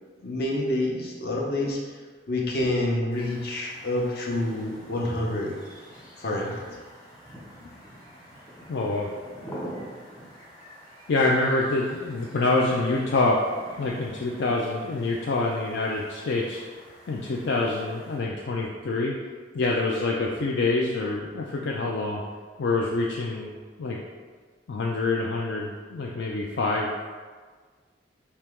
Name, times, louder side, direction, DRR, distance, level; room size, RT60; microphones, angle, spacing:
voice 1, 0.2-1.8 2.3-5.5 6.2-6.6, left 1 dB, 60° left, -2 dB, 0.8 m, -27 dB
sound 1, 3.1-18.2, equal, 20° left, 1.1 m, -46 dB
voice 2, 8.7-9.1 11.1-13.4 13.7-16.6 17.1-19.1 19.5-22.2 22.6-23.5 23.8-24.0 24.7-26.9, left 3 dB, 75° left, -2 dB, 0.4 m, -26 dB
4.3 x 2.9 x 3.5 m, 1.5 s
head